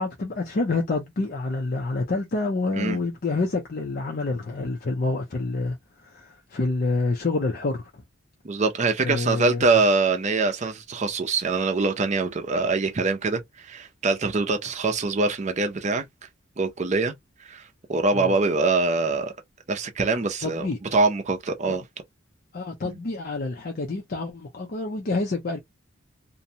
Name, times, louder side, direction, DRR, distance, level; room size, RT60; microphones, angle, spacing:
voice 1, 0.0-8.0 9.0-9.8 18.1-18.4 20.4-20.8 21.7-21.8 22.5-25.6, left 3 dB, 45° left, 0.5 m, -28 dB
voice 2, 8.4-16.0 16.6-17.1 17.5-17.6 17.9-19.3 19.7-20.7 20.9-21.8, right 3 dB, 35° right, 0.5 m, -24 dB
2.6 x 2.1 x 2.7 m
head